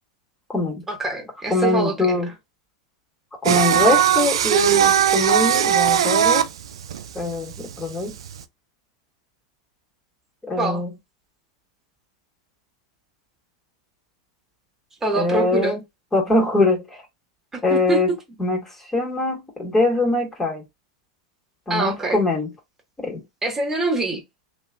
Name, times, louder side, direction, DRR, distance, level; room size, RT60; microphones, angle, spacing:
voice 1, 0.9-2.2 10.6-10.8 15.0-15.8 17.5-18.0 21.7-22.2 23.4-24.2, right 2 dB, 15° right, 1.7 m, -24 dB
voice 2, 1.5-2.3 3.4-6.5 7.1-8.1 10.4-10.9 15.2-15.8 16.1-16.8 17.6-18.1 18.4-18.6 18.9-20.6 21.7-22.5 23.0-23.2, left 2 dB, 15° left, 1.9 m, -22 dB
Singing, 3.4-8.4, right 9 dB, 75° right, 0.4 m, -19 dB
3.2 x 2.9 x 2.5 m
hypercardioid pair, 100°, 3 cm